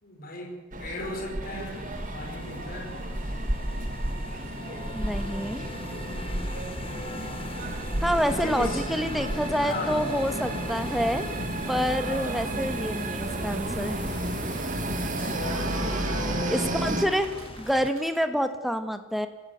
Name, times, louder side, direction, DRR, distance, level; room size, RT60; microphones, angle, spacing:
voice 1, 0.0-1.8 2.1-2.9 8.3-8.8 9.6-10.1 12.1-12.5 15.0-17.1, left 2 dB, 45° left, 0 dB, 4.9 m, -37 dB
sound 1, 0.7-17.1, right 1 dB, 40° right, 1.8 m, -32 dB
sound 2, 1.4-17.9, left 2 dB, 25° left, 0.9 m, -40 dB
voice 2, 4.9-5.7 8.0-11.3 11.7-14.0 16.5-17.3 17.6-19.3, equal, ahead, 8 dB, 1.4 m, -27 dB
Cheering / Applause, 13.3-18.2, right 5 dB, 85° right, 1.7 m, -42 dB
26.0 x 15.5 x 8.1 m, 1.1 s
head